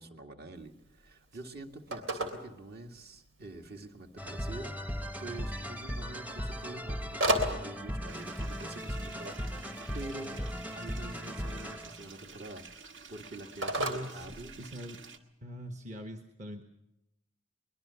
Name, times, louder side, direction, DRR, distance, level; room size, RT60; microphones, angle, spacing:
voice 1, 0.0-14.5, right 2 dB, 55° right, 4 dB, 2.0 m, -46 dB
Telephone, 0.6-15.1, right 1 dB, 90° right, 3.3 m, -39 dB
sound 1, 4.2-12.1, equal, 10° right, 0.8 m, -38 dB
sound 2, 8.1-15.2, right 5 dB, 70° right, 1.8 m, -51 dB
voice 2, 13.8-14.3 14.6-15.0 15.4-16.6, equal, 40° right, 5 dB, 1.3 m, -42 dB
23.0 x 21.0 x 7.0 m, 0.89 s
head